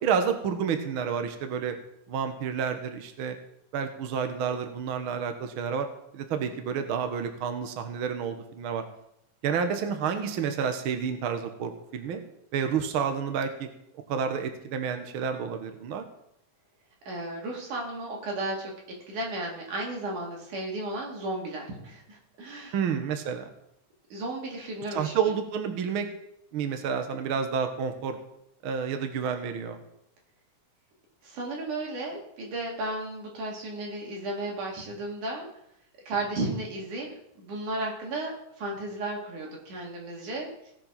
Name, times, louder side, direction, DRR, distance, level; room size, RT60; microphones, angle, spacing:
voice 1, 0.0-1.7 2.1-3.3 3.7-5.9 6.1-8.8 9.4-12.2 12.5-13.7 14.1-16.0 22.7-23.5 24.9-26.1 26.5-28.2 28.6-29.8, right 7 dB, 60° right, 7 dB, 1.5 m, -29 dB
voice 2, 17.1-18.7 19.1-22.8 24.1-25.1 31.2-35.5 36.1-37.1 37.4-40.7, right 2 dB, 75° right, -1 dB, 4.1 m, -34 dB
17.5 x 5.9 x 5.8 m, 0.76 s
omnidirectional pair, 3.6 m